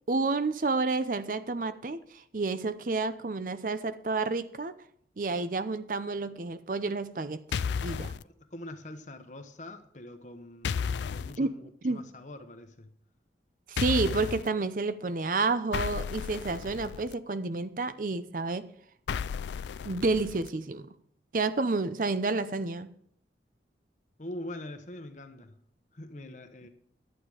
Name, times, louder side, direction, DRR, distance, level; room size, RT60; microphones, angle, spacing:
voice 1, 0.1-2.0 2.3-4.7 5.2-7.4 7.8-8.1 11.4-11.5 11.8-12.0 13.7-18.7 19.8-20.9 21.3-22.9, right 3 dB, 50° right, 0.6 m, -30 dB
sound 1, 7.5-8.2 10.6-11.4 13.8-14.5 15.7-17.1 19.1-20.5, left 6 dB, 80° left, 0.4 m, -33 dB
voice 2, 8.2-12.9 24.2-25.6 25.9-26.7, left 1 dB, 45° left, 1.1 m, -44 dB
11.5 x 8.9 x 4.9 m
head